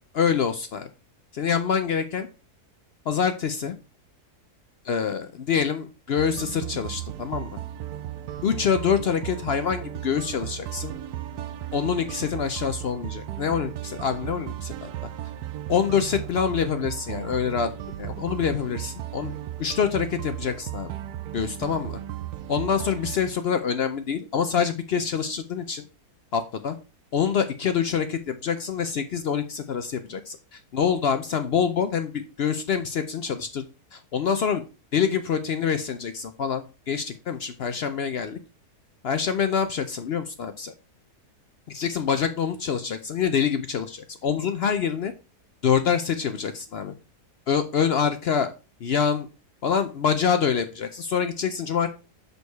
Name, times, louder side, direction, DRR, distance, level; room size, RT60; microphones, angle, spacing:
voice 1, 0.1-0.9 1.3-2.3 3.1-3.7 4.8-7.6 8.4-10.9 11.7-14.9 15.7-17.7 18.0-20.9 21.3-22.0 22.5-25.8 26.3-26.8 27.1-33.6 33.9-34.6 34.9-38.4 39.0-40.7 41.7-45.1 45.6-46.9 47.5-48.5 48.8-49.3 49.6-51.9, left 7 dB, 65° left, 9 dB, 0.6 m, -26 dB
sound 1, 6.2-23.2, right 12 dB, 80° right, 1.1 m, -35 dB
6.3 x 5.3 x 4.6 m, 0.32 s
omnidirectional pair, 1.6 m